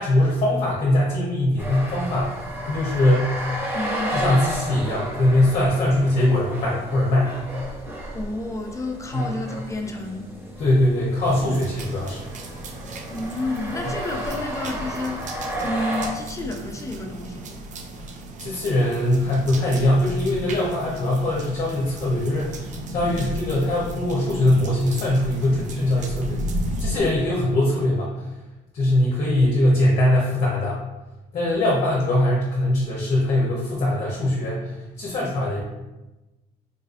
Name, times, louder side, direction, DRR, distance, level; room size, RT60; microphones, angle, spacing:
voice 1, 0.0-3.4 4.1-7.3 9.1-9.2 10.6-12.3 18.4-28.3 28.7-30.8 31.3-35.6, left 1 dB, 45° left, -4 dB, 0.8 m, -22 dB
sound 1, 1.6-16.1, right 1 dB, 15° right, 0.8 m, -33 dB
voice 2, 3.7-4.2 8.1-10.3 13.1-17.6, left 2 dB, 20° left, 3 dB, 0.4 m, -30 dB
sound 2, 11.2-27.0, right 1 dB, 45° right, 0.4 m, -34 dB
4.0 x 2.6 x 2.5 m, 1.1 s
cardioid pair, 110°, 17 cm